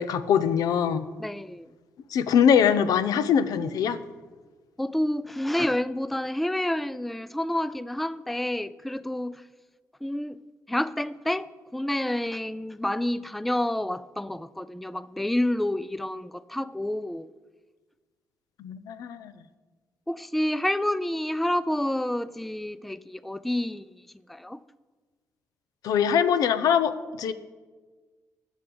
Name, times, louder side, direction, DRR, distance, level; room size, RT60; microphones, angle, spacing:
voice 1, 0.0-1.1 2.1-4.0 18.6-19.3 25.8-27.3, left 8 dB, 85° left, 0.7 m, -23 dB
voice 2, 1.2-1.7 4.8-9.3 10.0-10.4 10.7-17.3 20.1-23.9 24.3-24.6, left 1 dB, ahead, 0.3 m, -29 dB
11.0 x 6.4 x 8.5 m
cardioid pair, 115°, 6 cm